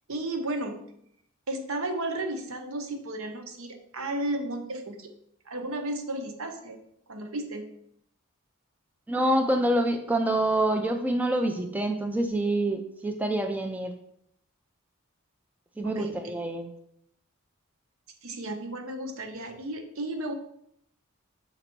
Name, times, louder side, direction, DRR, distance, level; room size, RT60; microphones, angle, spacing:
voice 1, 0.1-0.8 1.5-5.1 5.5-6.8 7.1-7.7 15.8-16.2 18.2-20.3, right 1 dB, 70° right, 5 dB, 0.9 m, -33 dB
voice 2, 9.1-14.0 15.8-16.7, right 1 dB, 5° right, 4 dB, 0.4 m, -26 dB
6.6 x 4.0 x 4.4 m, 0.72 s
head